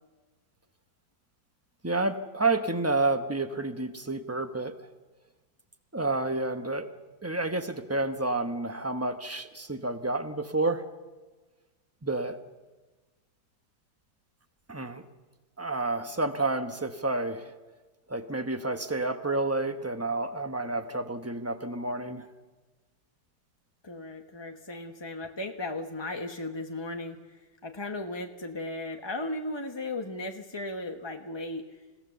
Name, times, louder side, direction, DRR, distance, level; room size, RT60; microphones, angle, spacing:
voice 1, 1.8-4.9 5.9-6.9 7.2-10.8 12.0-12.4 14.7-15.0 15.6-17.5 18.1-22.3, right 2 dB, 15° right, 7 dB, 0.5 m, -30 dB
voice 2, 23.8-31.7, left 2 dB, 20° left, 4 dB, 0.7 m, -36 dB
28.0 x 17.5 x 7.0 m, 1.3 s
omnidirectional pair, 2.1 m